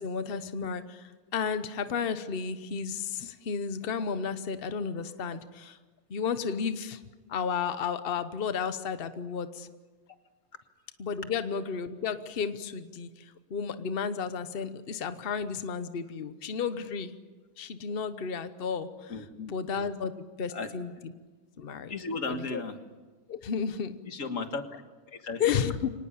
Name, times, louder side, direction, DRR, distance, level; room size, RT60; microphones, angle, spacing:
voice 1, 0.0-5.8 6.1-7.0 7.3-9.7 11.0-17.1 17.6-21.1 21.6-21.9 22.3-22.6 23.3-23.9 25.4-25.9, left 6 dB, 75° left, 11 dB, 0.5 m, -33 dB
voice 2, 19.1-19.5 20.5-20.7 21.9-22.8 24.1-24.6 25.1-25.7, left 3 dB, 40° left, 7 dB, 1.8 m, -35 dB
24.5 x 19.0 x 8.7 m, 1.3 s
omnidirectional pair, 2.4 m